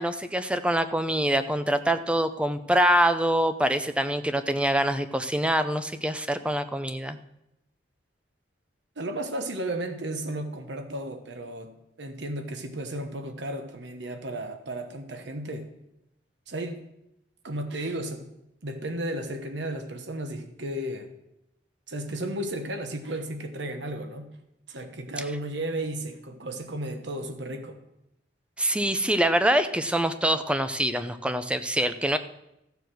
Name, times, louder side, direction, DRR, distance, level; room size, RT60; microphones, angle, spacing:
voice 1, 0.0-7.2 28.6-32.2, right 1 dB, 5° right, 10 dB, 0.6 m, -25 dB
voice 2, 9.0-15.7 16.5-16.8 17.4-18.3 18.6-21.1 21.9-24.3 24.7-27.8, right 1 dB, 70° right, 7 dB, 1.2 m, -34 dB
14.5 x 7.0 x 6.2 m, 0.86 s
head